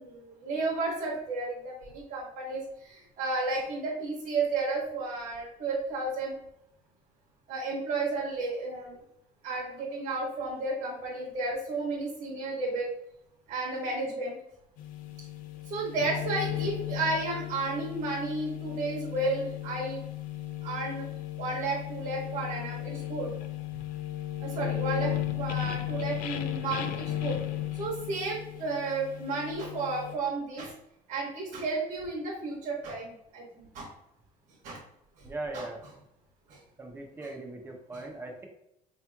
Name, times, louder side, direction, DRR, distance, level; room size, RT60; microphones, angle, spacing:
voice 1, 0.0-6.4 7.5-9.0 9.4-12.9 13.5-14.4 15.7-20.0 20.6-21.1 21.4-23.3 24.4-27.4 27.7-30.7 31.1-33.9 34.6-34.8 35.2-35.3 35.5-35.6 36.5-36.6 37.9-38.0, right 3 dB, 55° right, -5 dB, 1.1 m, -32 dB
sound 1, 14.8-30.2, left 13 dB, 60° left, 0.4 m, -35 dB
voice 2, 35.2-35.8 36.8-38.5, right 2 dB, 15° right, 1 dB, 0.6 m, -39 dB
4.6 x 2.9 x 2.3 m, 0.81 s
cardioid pair, 165°, 16 cm